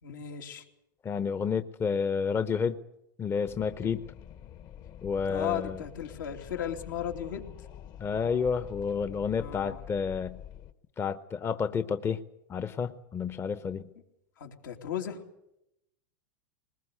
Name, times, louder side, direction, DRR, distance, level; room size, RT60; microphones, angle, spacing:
voice 1, 0.0-0.6 3.8-3.9 5.3-7.5 9.4-9.8 14.4-15.2, left 9 dB, 80° left, 2 dB, 2.9 m, -36 dB
voice 2, 1.0-2.8 3.2-4.0 5.0-5.8 8.0-10.4 11.0-12.2 12.5-13.9, left 6 dB, 25° left, 13 dB, 0.8 m, -30 dB
Wind, 3.4-10.7, left 10 dB, 40° left, 1.2 m, -47 dB
21.0 x 20.0 x 8.1 m, 0.86 s
hypercardioid pair, 115°, 11 cm